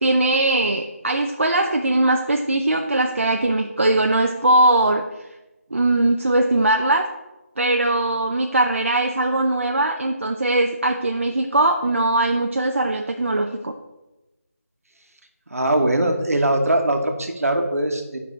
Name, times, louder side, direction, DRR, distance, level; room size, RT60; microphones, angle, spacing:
voice 1, 0.0-5.0 5.7-7.1 7.6-13.7, right 2 dB, 55° right, 3 dB, 0.5 m, -20 dB
voice 2, 15.5-18.2, right 1 dB, 70° right, 5 dB, 1.2 m, -21 dB
9.2 x 5.4 x 3.2 m, 1.0 s
figure-of-eight pair, 175°, 8 cm